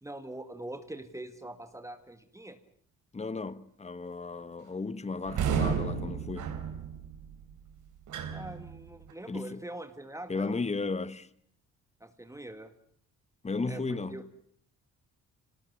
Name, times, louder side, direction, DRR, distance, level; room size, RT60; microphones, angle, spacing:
voice 1, 0.0-2.6 8.3-10.6 12.0-12.7 13.7-14.2, right 1 dB, 10° right, 2.0 m, -43 dB
voice 2, 3.1-6.6 9.3-9.6 10.3-11.3 13.4-14.2, left 3 dB, 20° left, 1.3 m, -35 dB
sound 1, 5.2-9.1, right 7 dB, 75° right, 4.0 m, -33 dB
25.0 x 18.5 x 9.7 m
cardioid pair, 90°, 30 cm